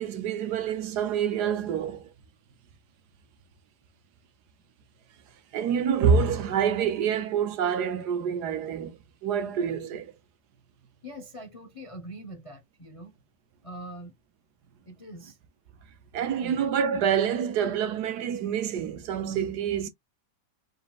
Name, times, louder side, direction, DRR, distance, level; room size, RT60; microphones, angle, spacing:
voice 1, 0.0-2.1 5.5-10.1 16.1-19.9, right 7 dB, 70° right, 1.3 m, -27 dB
voice 2, 11.0-13.1 13.6-14.1 14.9-15.4 16.2-16.7, right 1 dB, 40° left, 0.5 m, -43 dB
4.1 x 3.8 x 2.3 m
omnidirectional pair, 1.9 m